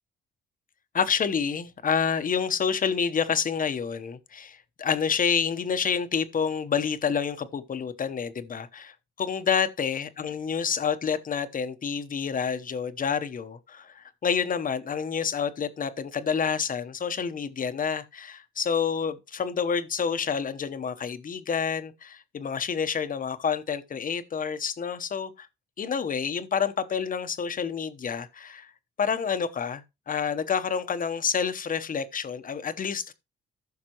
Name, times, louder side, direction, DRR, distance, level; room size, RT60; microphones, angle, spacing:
voice 1, 0.9-25.5 25.8-28.7 29.0-33.1, left 6 dB, 45° left, 1.0 m, -28 dB
14.5 x 5.8 x 3.0 m
cardioid pair, 90°, 20 cm